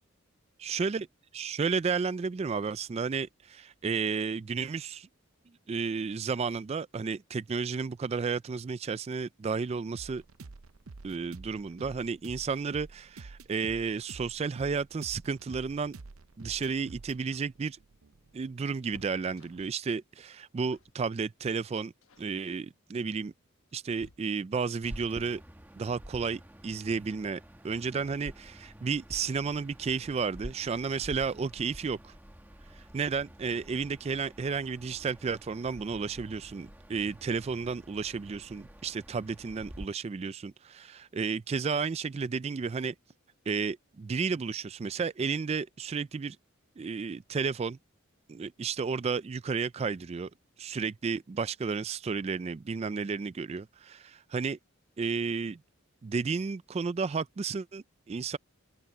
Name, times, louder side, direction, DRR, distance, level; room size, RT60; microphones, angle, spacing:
voice 1, 0.6-1.1 1.3-5.1 5.7-10.2 11.0-16.0 16.4-17.8 18.3-21.9 22.2-23.3 23.7-25.4 25.8-32.1 32.7-42.9 43.5-46.4 46.8-47.8 48.3-50.3 50.6-54.6 55.0-55.6 56.0-58.4, right 5 dB, 30° right, 0.3 m, -32 dB
sound 1, 9.9-19.6, right 3 dB, 85° right, 0.7 m, -49 dB
sound 2, 17.3-19.9 20.7-21.1 21.3-21.6 22.0-22.4 23.2-24.7 26.4-26.5 26.9-27.0 28.2-28.6 28.9-29.0 29.3-29.5, left 2 dB, 80° left, 1.2 m, -59 dB
sound 3, 24.8-39.9, equal, 10° right, 1.1 m, -49 dB
open air
head